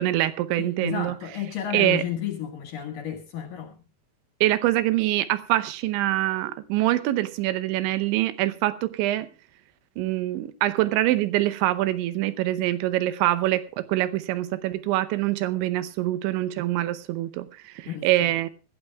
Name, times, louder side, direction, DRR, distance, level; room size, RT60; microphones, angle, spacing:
voice 1, 0.0-1.1 1.7-2.0 4.4-9.3 10.0-18.5, right 15 dB, 80° right, 3.1 m, -24 dB
voice 2, 0.6-3.7 17.9-18.3, left 9 dB, 60° left, 2.6 m, -32 dB
25.0 x 12.0 x 2.3 m
omnidirectional pair, 5.4 m